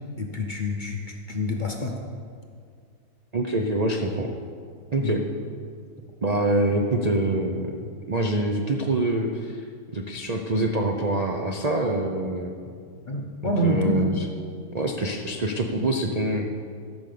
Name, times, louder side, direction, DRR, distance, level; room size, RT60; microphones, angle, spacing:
voice 1, 0.2-2.0 5.0-5.2 13.1-14.1, left 1 dB, 35° left, 2 dB, 0.9 m, -27 dB
voice 2, 3.3-4.3 4.9-5.2 6.2-7.8 8.1-9.6 9.9-12.5 13.6-14.2 14.7-16.5, right 2 dB, 40° right, 2 dB, 0.5 m, -25 dB
14.5 x 6.3 x 6.8 m, 2.2 s
omnidirectional pair, 1.7 m